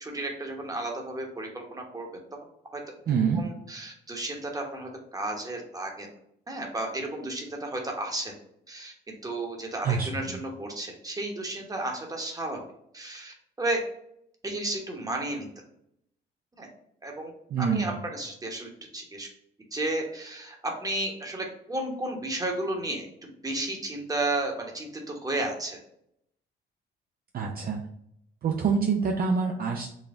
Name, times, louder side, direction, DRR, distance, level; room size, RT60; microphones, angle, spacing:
voice 1, 0.0-2.1 2.7-2.8 3.3-6.1 6.5-8.3 8.7-8.9 9.2-12.6 12.9-13.8 14.4-15.5 16.6-16.7 17.0-17.3 17.6-19.3 19.7-20.5 20.8-23.1 23.4-25.8, right 2 dB, 20° right, 1 dB, 1.0 m, -33 dB
voice 2, 3.1-3.4 9.8-10.4 17.5-17.9 27.3-27.8 28.4-29.9, right 5 dB, 50° right, 2 dB, 0.5 m, -26 dB
4.2 x 2.2 x 3.5 m, 0.74 s
cardioid pair, 90°, 20 cm